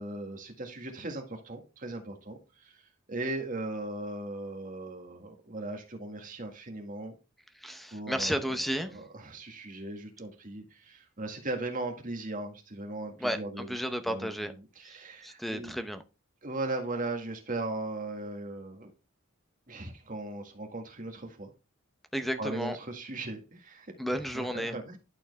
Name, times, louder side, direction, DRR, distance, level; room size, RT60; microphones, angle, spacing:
voice 1, 0.0-2.8 3.1-7.1 7.9-13.7 14.0-14.3 14.8-15.7 16.4-18.9 19.7-21.5 22.4-23.9 24.3-25.0, right 2 dB, 40° right, 4 dB, 1.8 m, -38 dB
voice 2, 7.6-9.0 13.2-14.5 14.8-15.0 15.2-16.0 22.1-22.8 24.0-24.8, equal, ahead, 9 dB, 0.7 m, -33 dB
11.5 x 4.4 x 3.4 m, 0.30 s
head